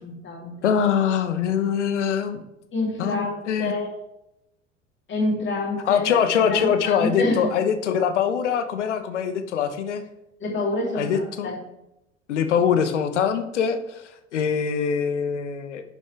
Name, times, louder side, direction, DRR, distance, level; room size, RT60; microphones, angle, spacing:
voice 1, 0.0-0.7 2.7-3.9 5.1-6.1 6.5-7.5 10.4-11.1 11.4-11.5, left 2 dB, 30° left, -1 dB, 2.9 m, -27 dB
voice 2, 0.6-2.4 3.0-3.7 5.9-10.0 10.9-11.5 12.3-14.0 14.3-15.8, left 7 dB, 65° left, 9 dB, 1.0 m, -23 dB
10.5 x 7.1 x 3.3 m, 0.86 s
figure-of-eight pair, 70°, 38 cm